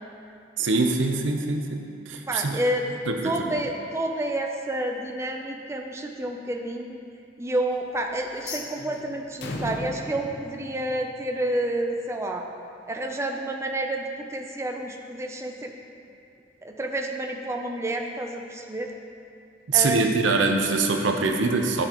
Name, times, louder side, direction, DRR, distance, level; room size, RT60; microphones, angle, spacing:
voice 1, 0.6-1.8 2.1-2.6 3.1-3.2 3.5-3.6 19.7-21.9, right 3 dB, 75° right, 4 dB, 0.7 m, -23 dB
voice 2, 2.3-2.9 3.2-7.0 7.4-12.4 12.9-15.7 16.6-18.9 19.7-20.4, right 1 dB, 15° right, 2 dB, 0.5 m, -29 dB
sound 1, 8.4-11.5, left 2 dB, 65° left, 0.8 m, -37 dB
12.5 x 6.8 x 3.0 m, 2.4 s
head